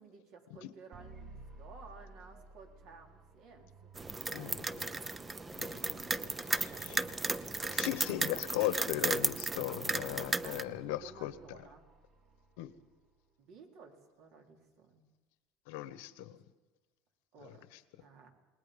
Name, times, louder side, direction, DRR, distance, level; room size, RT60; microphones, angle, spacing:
voice 1, 0.0-3.7 4.1-5.1 5.9-6.1 6.4-7.4 10.4-11.8 13.4-15.0 16.2-16.3 17.3-17.7 18.0-18.3, right 4 dB, 60° right, 3 dB, 3.9 m, -55 dB
sound 1, 0.9-13.1, right 3 dB, 45° right, 6.9 m, -57 dB
sound 2, 4.0-10.6, right 3 dB, 15° right, 0.7 m, -35 dB
voice 2, 5.5-6.0 6.6-7.0 7.7-11.3 12.6-12.7 15.7-16.3 17.4-17.5, left 14 dB, 85° left, 14 dB, 1.2 m, -37 dB
28.0 x 20.5 x 5.3 m, 1.2 s
cardioid pair, 135°, 0 cm